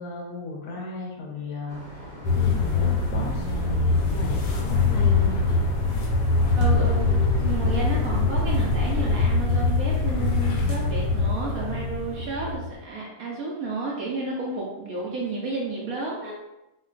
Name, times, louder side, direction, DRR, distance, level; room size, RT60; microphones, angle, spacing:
voice 1, 0.0-5.6, left 3 dB, 70° left, -1 dB, 1.0 m, -35 dB
sound 1, 1.7-8.2, equal, 45° left, 0.6 m, -41 dB
sound 2, 2.2-12.8, left 3 dB, 85° left, 1.4 m, -23 dB
voice 2, 6.5-16.4, right 3 dB, 75° right, -4 dB, 0.8 m, -31 dB
4.5 x 2.1 x 2.4 m, 0.94 s
omnidirectional pair, 2.0 m